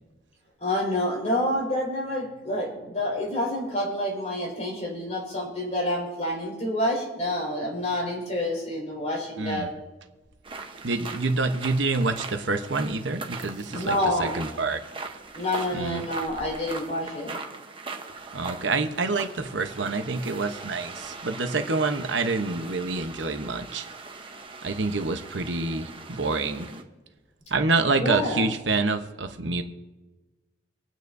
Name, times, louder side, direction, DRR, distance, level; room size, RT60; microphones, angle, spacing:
voice 1, 0.6-9.7 13.7-14.3 15.3-17.4 28.0-28.5, left 1 dB, 35° left, -4 dB, 5.1 m, -28 dB
voice 2, 9.4-9.7 10.8-14.8 15.7-16.0 18.3-23.8 24.6-26.7 27.5-29.6, right 3 dB, 85° right, 7 dB, 1.0 m, -27 dB
sound 1, 10.4-26.8, right 3 dB, 30° right, 1.0 m, -40 dB
25.5 x 9.3 x 2.7 m, 1.2 s
head